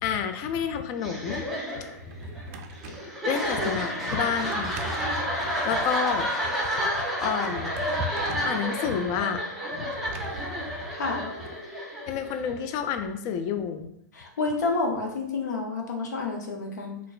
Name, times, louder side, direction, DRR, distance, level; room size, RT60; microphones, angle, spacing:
voice 1, 0.0-1.5 1.8-1.9 3.2-4.8 5.1-5.2 5.6-6.3 7.2-7.7 8.3-9.4 9.7-9.8 12.1-13.9, left 7 dB, 40° left, 8 dB, 0.4 m, -29 dB
sound 1, 1.0-12.7, equal, ahead, 0.7 m, -30 dB
Drawer open or close, 1.8-3.1 4.3-5.9 7.3-8.6 9.9-11.6, right 1 dB, 50° right, 0.4 m, -40 dB
voice 2, 10.9-11.3 14.1-17.0, left 3 dB, 75° left, 1 dB, 0.7 m, -29 dB
3.9 x 2.3 x 2.4 m, 0.75 s
hypercardioid pair, 120°, 9 cm